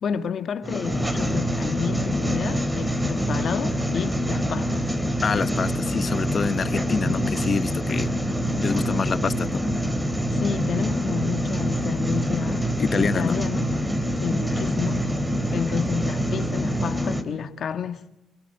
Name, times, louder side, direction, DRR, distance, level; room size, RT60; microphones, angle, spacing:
voice 1, 0.0-4.9 10.3-12.6 12.9-13.7 14.1-15.1 15.5-18.0, left 7 dB, 60° left, 2.0 m, -30 dB
sound 1, 0.6-17.2, equal, 5° right, 3.0 m, -25 dB
voice 2, 5.2-8.1 8.6-9.6 12.8-13.4, left 5 dB, 45° left, 0.8 m, -26 dB
27.5 x 19.0 x 7.8 m
cardioid pair, 90°, 0 cm